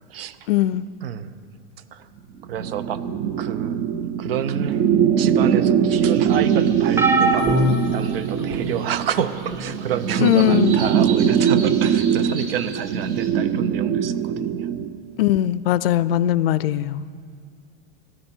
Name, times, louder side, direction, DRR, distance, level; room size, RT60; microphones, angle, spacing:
voice 1, 0.5-0.9 10.2-10.7 15.2-17.0, left 13 dB, 75° left, 18 dB, 0.5 m, -19 dB
voice 2, 1.0-1.3 1.9-2.1 2.5-3.1 3.4-3.9 4.2-4.9 5.2-7.5 7.9-14.7, right 9 dB, 75° right, 14 dB, 0.9 m, -29 dB
sound 1, 2.5-15.0, right 8 dB, 25° right, 0.4 m, -22 dB
sound 2, 5.9-13.3, right 5 dB, 50° right, 2.1 m, -39 dB
sound 3, 7.0-8.8 9.5-9.8 11.1-11.2, right 1 dB, 10° right, 0.8 m, -22 dB
17.5 x 13.0 x 4.5 m, 2.1 s
supercardioid pair, 145°, 30 cm